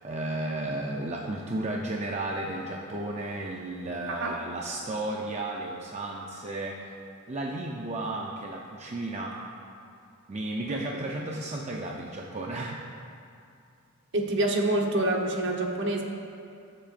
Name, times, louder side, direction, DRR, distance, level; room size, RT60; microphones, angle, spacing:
voice 1, 0.0-6.8 7.3-9.4 10.3-12.8, right 2 dB, 30° right, -1 dB, 0.6 m, -33 dB
voice 2, 4.1-4.4 10.7-11.1 14.1-16.0, right 1 dB, 55° right, 1 dB, 1.1 m, -27 dB
20.5 x 7.5 x 2.6 m, 2.5 s
head